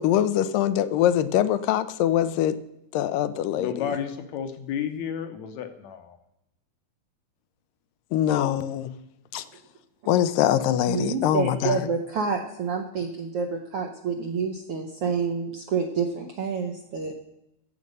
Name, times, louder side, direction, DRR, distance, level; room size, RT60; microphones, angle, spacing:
voice 1, 0.0-2.6 2.9-4.0 8.1-8.9 9.3-9.4 10.1-11.9, left 11 dB, 85° left, 13 dB, 2.3 m, -23 dB
voice 2, 3.6-6.2, left 8 dB, 70° left, 7 dB, 1.9 m, -32 dB
voice 3, 10.9-17.1, right 5 dB, 70° right, 3 dB, 1.4 m, -28 dB
14.5 x 7.5 x 5.3 m, 0.83 s
omnidirectional pair, 3.8 m